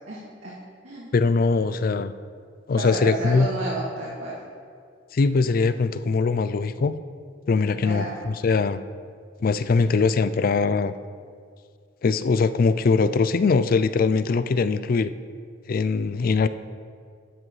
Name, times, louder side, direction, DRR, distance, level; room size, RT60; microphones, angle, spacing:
voice 1, 0.1-1.1 2.7-4.3 7.8-8.2, right 2 dB, 85° right, -9 dB, 2.4 m, -32 dB
voice 2, 1.1-2.1 2.7-3.5 5.1-6.9 7.5-8.8 9.4-10.9 12.0-15.1 15.7-16.5, left 4 dB, 45° left, 13 dB, 0.4 m, -21 dB
12.0 x 10.0 x 3.2 m, 2.1 s
head